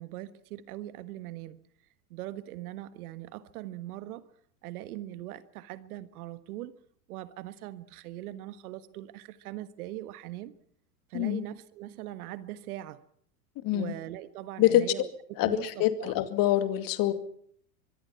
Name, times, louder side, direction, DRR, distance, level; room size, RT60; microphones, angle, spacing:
voice 1, 0.0-1.6 2.1-4.2 4.6-6.7 7.1-10.5 11.1-13.0 13.7-15.1 15.5-16.1, right 14 dB, 60° right, 14 dB, 1.6 m, -41 dB
voice 2, 13.6-13.9 14.6-14.9 15.4-17.1, left 13 dB, 45° left, 10 dB, 2.4 m, -25 dB
24.0 x 23.0 x 5.9 m, 0.62 s
hypercardioid pair, 100°, 48 cm